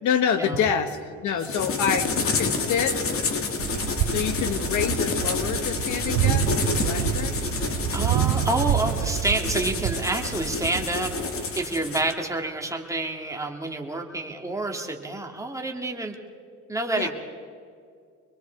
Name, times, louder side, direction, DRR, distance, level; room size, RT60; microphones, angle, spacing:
voice 1, 0.0-3.0 4.1-7.4 16.9-17.1, left 7 dB, 75° left, 9 dB, 1.6 m, -27 dB
sound 1, 1.4-12.1, left 4 dB, 45° left, 2.3 m, -29 dB
sound 2, 3.6-11.8, right 11 dB, 80° right, 0.9 m, -28 dB
voice 2, 7.9-11.1 11.5-16.2 16.7-17.1, right 2 dB, 10° right, 2 dB, 2.3 m, -28 dB
25.5 x 22.5 x 4.6 m, 2.2 s
cardioid pair, 115°, 30 cm